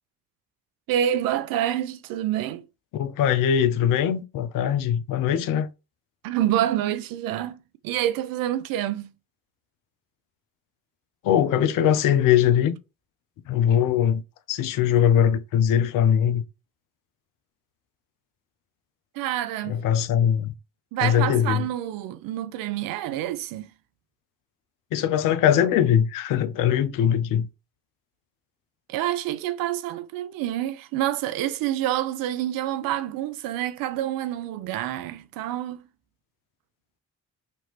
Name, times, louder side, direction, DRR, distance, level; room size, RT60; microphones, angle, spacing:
voice 1, 0.9-2.6 6.2-9.1 19.2-19.8 20.9-23.7 28.9-35.8, right 12 dB, 60° right, 0.5 m, -27 dB
voice 2, 2.9-5.7 11.2-12.8 13.5-14.2 14.5-16.4 19.7-20.5 21.0-21.7 24.9-27.5, left 9 dB, 55° left, 0.5 m, -21 dB
2.9 x 2.5 x 3.0 m
hypercardioid pair, 40°, 39 cm